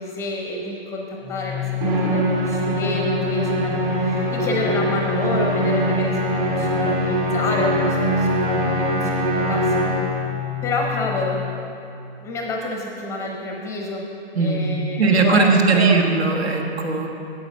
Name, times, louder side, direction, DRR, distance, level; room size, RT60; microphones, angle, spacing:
voice 1, 0.0-9.8 10.6-11.4 12.2-14.0 14.4-16.0, left 2 dB, 10° left, 0 dB, 0.6 m, -28 dB
Organ, 1.2-12.1, left 15 dB, 20° right, 0.9 m, -30 dB
Musical instrument, 1.8-10.3, right 1 dB, 40° right, 2.1 m, -23 dB
voice 2, 14.3-17.1, right 4 dB, 85° right, 3 dB, 1.5 m, -19 dB
9.0 x 8.0 x 5.4 m, 2.7 s
hypercardioid pair, 150°, 31 cm